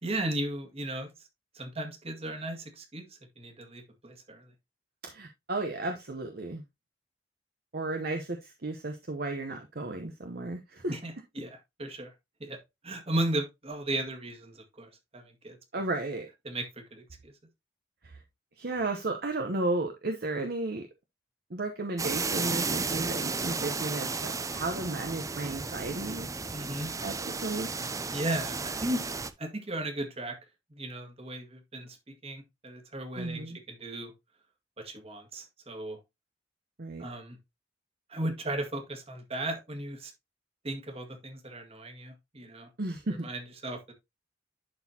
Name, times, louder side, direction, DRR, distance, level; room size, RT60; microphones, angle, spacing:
voice 1, 0.0-1.1 1.5-3.0 3.4-4.5 10.9-12.1 12.4-12.6 12.8-15.6 16.4-17.3 26.5-26.9 28.1-29.0 29.4-30.4 30.7-34.1 34.8-36.0 37.0-37.4 38.1-40.1 40.6-42.7 43.2-43.9, right 1 dB, 35° right, 1.9 m, -36 dB
voice 2, 5.0-6.6 7.7-10.9 15.7-16.3 18.0-18.2 18.6-20.9 21.5-26.3 27.0-27.1 27.4-27.7 33.2-33.6 36.8-37.0 42.8-43.3, right 2 dB, 60° right, 0.9 m, -34 dB
sound 1, 22.0-29.3, right 4 dB, 20° right, 0.5 m, -33 dB
11.0 x 4.3 x 2.8 m
head